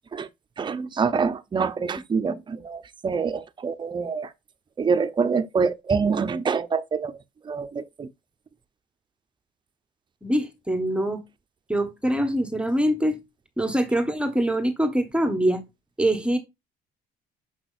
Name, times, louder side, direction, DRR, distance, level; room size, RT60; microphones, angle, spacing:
voice 1, 0.6-4.3 4.8-7.2 7.4-8.1, right 5 dB, 30° right, 0.7 m, -26 dB
voice 2, 10.2-11.2 11.7-13.2 13.6-15.6 16.0-16.4, right 1 dB, 5° right, 1.2 m, -24 dB
6.4 x 5.9 x 2.5 m
cardioid pair, 110°, 17 cm